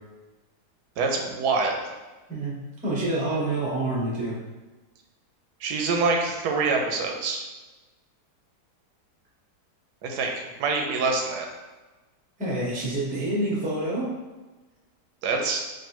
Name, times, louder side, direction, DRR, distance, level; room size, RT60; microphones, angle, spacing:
voice 1, 1.0-1.8 5.6-7.4 10.0-11.5 15.2-15.6, right 4 dB, 80° right, 2 dB, 1.2 m, -25 dB
voice 2, 2.8-4.4 12.4-14.2, right 1 dB, 10° right, -5 dB, 0.4 m, -27 dB
3.3 x 2.5 x 4.5 m, 1.2 s
omnidirectional pair, 1.7 m